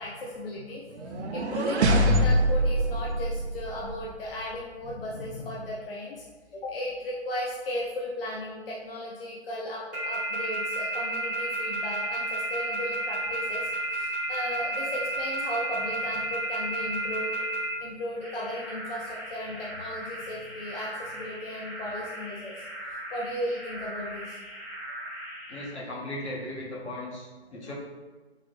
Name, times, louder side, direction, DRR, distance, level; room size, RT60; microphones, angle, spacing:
voice 1, 0.0-6.2 6.5-17.4 17.8-22.7 23.1-24.4 27.5-27.6, left 1 dB, 60° left, -4 dB, 0.6 m, -36 dB
sound 1, 1.0-4.1, right 1 dB, 85° right, 0.5 m, -24 dB
sound 2, 9.9-17.6 18.2-25.7, right 2 dB, 5° right, 0.6 m, -34 dB
voice 2, 25.5-27.7, left 1 dB, 80° left, -4 dB, 1.2 m, -37 dB
3.6 x 2.0 x 3.1 m, 1.3 s
figure-of-eight pair, 150°, 33 cm